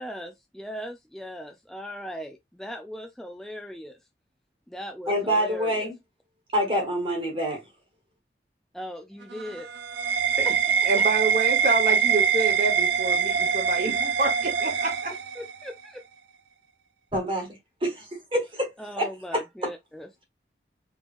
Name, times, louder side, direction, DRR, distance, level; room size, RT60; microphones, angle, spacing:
voice 1, 0.0-4.0 4.7-5.9 8.7-9.7 10.4-10.5 11.0-11.1 15.4-16.0 18.8-20.1, equal, 5° left, 0.3 m, -38 dB
voice 2, 5.1-5.9 6.5-7.6 17.1-17.5 17.8-18.7 19.0-19.7, equal, 30° right, 1.4 m, -26 dB
sound 1, 9.2-15.7, right 7 dB, 85° right, 0.4 m, -24 dB
voice 3, 10.8-15.1, right 2 dB, 50° right, 1.2 m, -28 dB
3.5 x 3.1 x 2.5 m
head